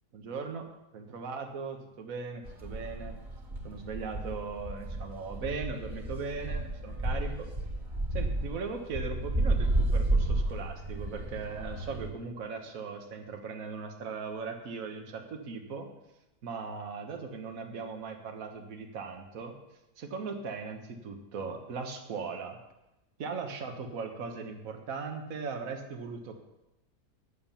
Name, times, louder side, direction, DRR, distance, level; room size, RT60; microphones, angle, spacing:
voice 1, 0.1-0.7 0.9-3.1 3.6-7.5 8.1-15.9 16.4-19.6 20.0-22.6 23.2-26.4, right 5 dB, 55° right, 4 dB, 1.6 m, -38 dB
sound 1, 2.4-12.1, right 1 dB, 30° right, 2.1 m, -32 dB
10.5 x 7.3 x 7.1 m, 0.95 s
omnidirectional pair, 1.8 m